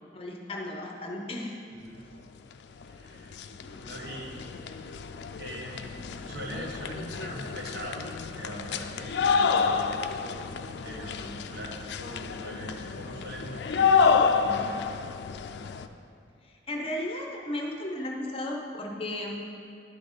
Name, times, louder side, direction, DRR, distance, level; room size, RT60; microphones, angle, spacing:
voice 1, 0.1-1.6 3.6-3.9 16.4-19.5, left 1 dB, 30° left, 0 dB, 0.8 m, -35 dB
voice 2, 1.7-2.0 2.8-3.3 3.8-4.4 5.3-10.4 10.8-14.6, right 1 dB, 60° right, -2 dB, 1.3 m, -42 dB
sound 1, 2.8-2.9 3.2-15.9, left 5 dB, 70° left, 0.3 m, -29 dB
11.5 x 4.1 x 5.0 m, 2.3 s
head